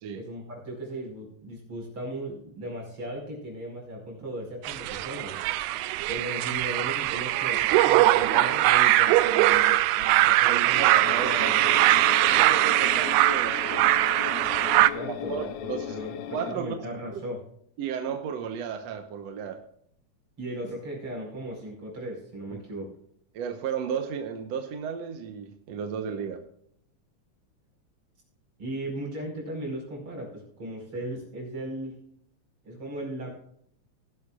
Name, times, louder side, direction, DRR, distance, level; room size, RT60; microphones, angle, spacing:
voice 1, 0.1-5.4 6.1-11.7 14.8-17.4 20.4-22.9 28.6-32.0 32.6-33.3, right 1 dB, 45° right, -1 dB, 5.9 m, -37 dB
sound 1, 4.6-14.9, right 16 dB, 85° right, 2.0 m, -22 dB
voice 2, 10.5-11.8 12.2-14.0 15.1-16.0 16.3-16.8 17.1-17.2 17.8-19.6 22.5-22.6 23.3-26.4, right 7 dB, 65° right, 6 dB, 2.1 m, -34 dB
sound 2, 10.7-16.5, left 12 dB, 75° left, 1.9 m, -37 dB
18.5 x 11.5 x 2.4 m, 0.67 s
omnidirectional pair, 3.4 m